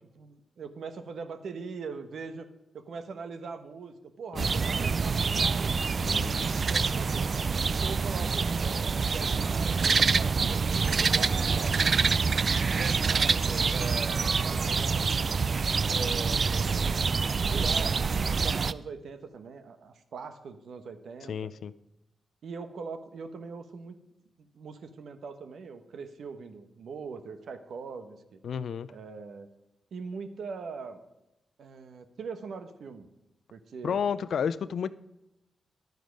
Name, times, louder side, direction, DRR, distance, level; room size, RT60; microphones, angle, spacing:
voice 1, 0.2-2.5 2.7-6.2 6.6-7.3 7.7-12.2 12.7-15.4 15.9-17.0 17.3-21.5 22.4-24.0 24.4-28.4 28.9-29.5 29.9-31.0 31.6-33.1 33.5-34.0, right 5 dB, 80° right, 9 dB, 1.0 m, -41 dB
sound 1, 4.4-18.7, right 5 dB, 55° right, 0.4 m, -26 dB
voice 2, 6.0-6.5 21.3-21.7 28.4-28.9 33.8-34.9, left 7 dB, 75° left, 17 dB, 0.4 m, -31 dB
11.0 x 9.2 x 5.2 m, 0.91 s
cardioid pair, 55°, 0 cm